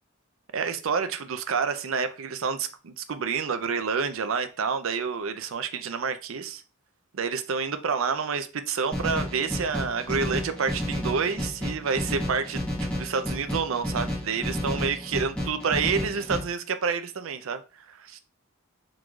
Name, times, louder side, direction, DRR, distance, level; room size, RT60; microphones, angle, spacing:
voice 1, 0.5-6.6 7.1-12.6 12.9-17.6 17.9-18.2, right 5 dB, 70° right, 0.5 m, -28 dB
sound 1, 8.9-16.4, left 1 dB, 5° left, 1.7 m, -31 dB
4.6 x 3.8 x 2.3 m
head